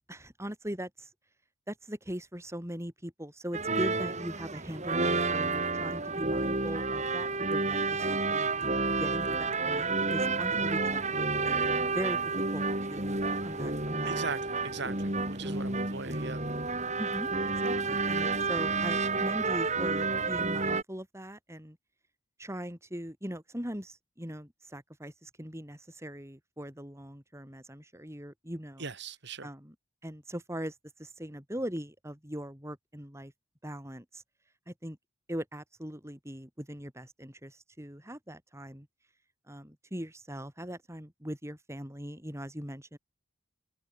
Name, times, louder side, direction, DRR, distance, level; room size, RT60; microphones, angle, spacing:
voice 1, 0.1-1.1 1.7-8.5 8.9-11.4 11.9-12.2 12.5-14.2 15.4-15.8 17.0-17.3 17.6-21.8 22.4-28.9 29.4-29.7 30.0-30.7 31.0-33.3 33.6-34.2 34.7-35.0 35.3-38.9 39.5-43.0, equal, 15° right, 5.4 m, -40 dB
sound 1, 3.5-20.8, right 3 dB, 35° right, 6.6 m, -30 dB
voice 2, 14.1-16.4 28.8-29.5, right 4 dB, 55° right, 2.6 m, -39 dB
head